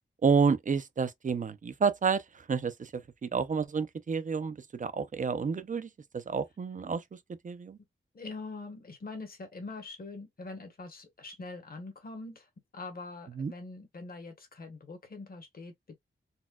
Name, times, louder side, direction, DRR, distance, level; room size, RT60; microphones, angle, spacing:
voice 1, 0.2-7.0 7.4-7.8 13.4-13.5, right 5 dB, 40° right, 0.4 m, -30 dB
voice 2, 8.1-15.9, left 3 dB, 45° left, 1.1 m, -43 dB
4.1 x 2.2 x 2.2 m
wide cardioid pair, 160°, 21 cm